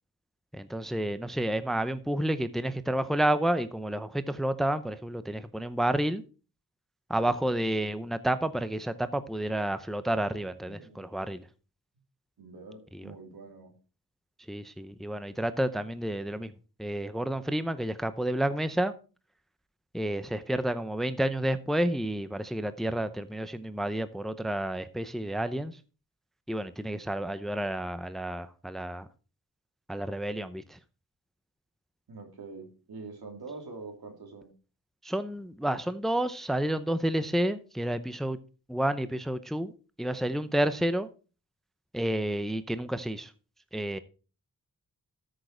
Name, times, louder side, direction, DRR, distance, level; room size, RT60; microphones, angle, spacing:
voice 1, 0.5-6.2 7.1-11.5 12.9-13.1 14.5-16.5 16.8-18.9 19.9-25.8 26.5-29.1 29.9-30.8 35.0-38.4 38.7-39.7 40.0-41.1 41.9-43.3 43.7-44.0, right 1 dB, ahead, 0.7 m, -30 dB
voice 2, 10.1-11.2 12.4-13.7 32.1-34.5, right 3 dB, 80° right, 2.9 m, -45 dB
13.0 x 6.6 x 4.4 m
wide cardioid pair, 100°, 36 cm